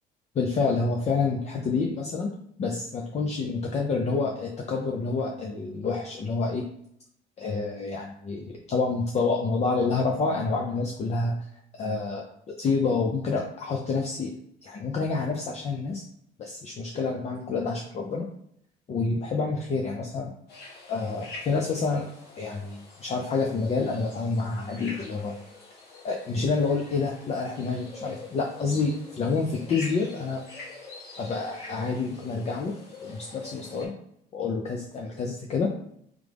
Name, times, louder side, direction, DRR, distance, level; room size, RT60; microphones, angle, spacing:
voice 1, 0.3-2.3 2.6-6.7 7.4-11.4 11.7-14.3 14.6-16.0 16.4-18.3 18.9-20.3 20.9-22.1 22.4-25.4 26.0-30.4 31.2-32.7 33.0-33.9 34.3-35.8, left 4 dB, 40° left, 1 dB, 0.6 m, -28 dB
sound 1, 20.5-33.9, left 3 dB, 75° left, 1.4 m, -45 dB
3.7 x 3.2 x 3.4 m, 0.70 s
cardioid pair, 110°, 17 cm